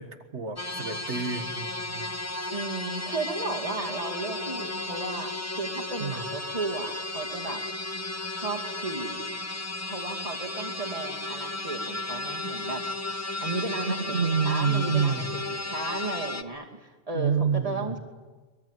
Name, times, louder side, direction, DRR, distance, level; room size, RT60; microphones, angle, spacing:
voice 1, 0.0-2.1 6.0-6.2 14.1-15.4 17.1-17.9, right 6 dB, 80° right, 7 dB, 1.9 m, -28 dB
sound 1, 0.6-16.4, left 2 dB, 15° left, 0.9 m, -34 dB
voice 2, 2.5-7.6 8.4-9.3 9.8-12.8 13.4-18.0, right 3 dB, 30° right, 1 dB, 2.7 m, -34 dB
23.0 x 22.0 x 9.3 m, 1.3 s
omnidirectional pair, 1.2 m